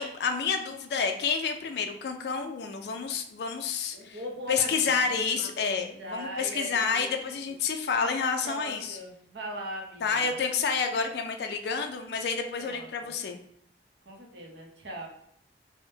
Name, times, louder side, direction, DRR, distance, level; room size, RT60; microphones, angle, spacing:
voice 1, 0.0-4.2 4.5-9.0 10.0-13.4, left 5 dB, 65° left, 5 dB, 0.4 m, -29 dB
voice 2, 3.9-5.7 6.0-7.1 8.4-10.3 12.6-13.1 14.1-15.1, equal, 80° right, -1 dB, 0.7 m, -40 dB
3.5 x 2.1 x 2.7 m, 0.71 s
head